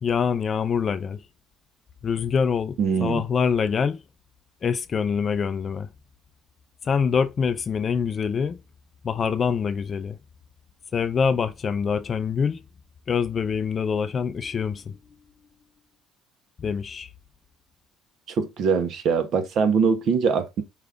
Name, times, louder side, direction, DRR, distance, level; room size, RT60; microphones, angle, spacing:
voice 1, 0.0-1.2 2.0-4.0 4.6-5.9 6.8-8.6 9.0-10.2 10.9-12.6 13.1-15.0 16.6-17.1, left 6 dB, 30° left, 0.3 m, -25 dB
voice 2, 2.8-3.2 18.3-20.6, right 5 dB, 50° right, 0.6 m, -22 dB
4.9 x 2.3 x 3.5 m
cardioid pair, 160°, 0 cm